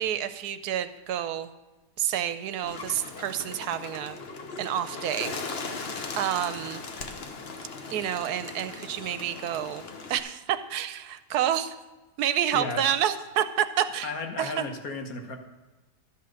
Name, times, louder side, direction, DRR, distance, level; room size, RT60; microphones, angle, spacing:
voice 1, 0.0-1.5 2.0-4.2 4.6-5.4 5.7-6.8 7.9-9.8 10.1-11.7 12.2-14.1 14.4-14.6, right 10 dB, 80° right, 11 dB, 1.1 m, -29 dB
Bird, 2.6-10.2, left 4 dB, 45° left, 1.0 m, -38 dB
voice 2, 12.5-12.9 14.0-15.4, left 3 dB, 65° left, 4 dB, 1.5 m, -34 dB
12.0 x 5.7 x 6.4 m, 1.1 s
omnidirectional pair, 1.7 m